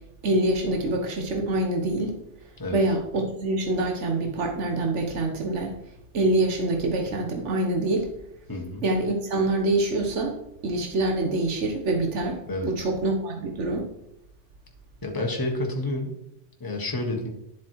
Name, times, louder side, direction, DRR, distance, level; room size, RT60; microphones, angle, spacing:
voice 1, 0.2-2.2 2.7-5.7 6.1-8.1 8.8-13.8, right 2 dB, 85° right, 2 dB, 1.5 m, -25 dB
voice 2, 8.5-8.8 12.5-12.7 15.0-16.1 16.6-17.3, left 1 dB, 20° left, 1 dB, 1.5 m, -29 dB
10.5 x 7.3 x 4.6 m, 0.80 s
omnidirectional pair, 1.2 m